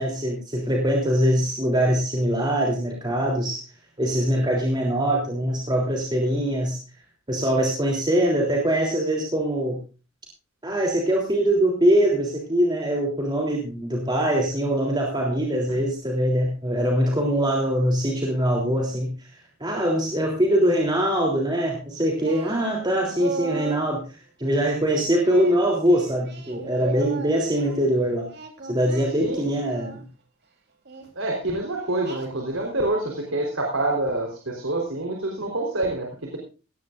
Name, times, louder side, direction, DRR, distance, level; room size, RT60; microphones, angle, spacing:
voice 1, 0.0-3.7 4.0-6.8 7.3-9.8 10.6-19.3 19.6-28.3 28.6-30.0, right 1 dB, 20° right, -1 dB, 3.4 m, -23 dB
Singing, 22.2-23.9 25.2-27.8 28.3-30.0 30.8-31.1 32.0-32.7, right 3 dB, 55° right, 3.6 m, -37 dB
voice 2, 31.2-36.4, right 2 dB, 85° right, 1 dB, 4.0 m, -27 dB
18.0 x 15.5 x 2.6 m, 0.35 s
head